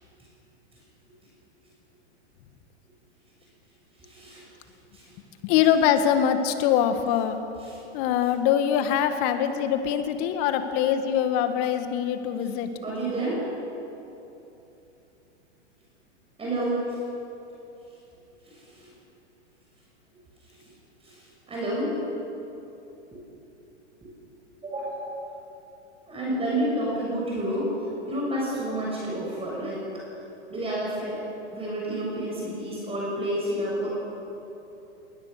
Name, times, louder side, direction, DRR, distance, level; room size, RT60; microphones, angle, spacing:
voice 1, 4.0-4.4 4.9-5.1 7.6-7.8 12.8-13.4 16.4-17.0 18.4-18.9 20.5-20.7 21.0-21.9 23.1-23.2 24.0-24.1 24.6-25.2 26.1-27.7 28.1-29.8 30.5-31.2 31.5-33.9, right 1 dB, 15° right, -4 dB, 6.6 m, -30 dB
voice 2, 5.4-7.4 7.9-12.7, left 9 dB, 45° left, 8 dB, 1.9 m, -23 dB
20.5 x 19.5 x 6.7 m, 3.0 s
hypercardioid pair, 115°, 36 cm